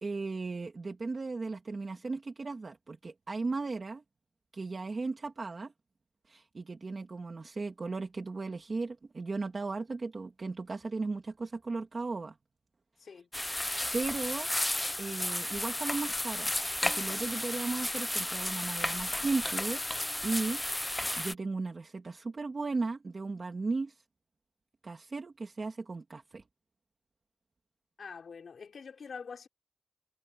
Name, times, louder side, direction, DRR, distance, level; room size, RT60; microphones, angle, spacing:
voice 1, 0.0-4.0 4.5-5.7 6.3-12.4 13.9-14.5 15.0-19.8 20.2-20.6 20.9-24.0 24.8-26.4, right 3 dB, 40° right, 2.0 m, -36 dB
sound 1, 13.3-21.3, left 1 dB, 10° left, 0.3 m, -33 dB
voice 2, 28.0-29.5, left 5 dB, 70° left, 5.2 m, -45 dB
wide cardioid pair, 175°, 0 cm